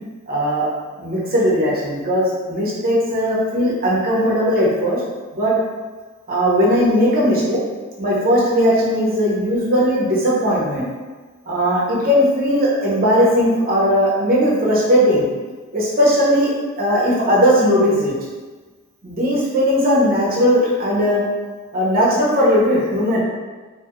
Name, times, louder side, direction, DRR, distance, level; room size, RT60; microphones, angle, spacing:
voice 1, 0.3-0.7 1.0-5.0 5.3-5.5 6.3-7.6 8.0-10.8 11.5-15.3 15.7-16.5 16.8-18.2 19.0-21.2 21.7-23.2, equal, 45° right, -6 dB, 0.8 m, -17 dB
2.7 x 2.4 x 3.0 m, 1.3 s
head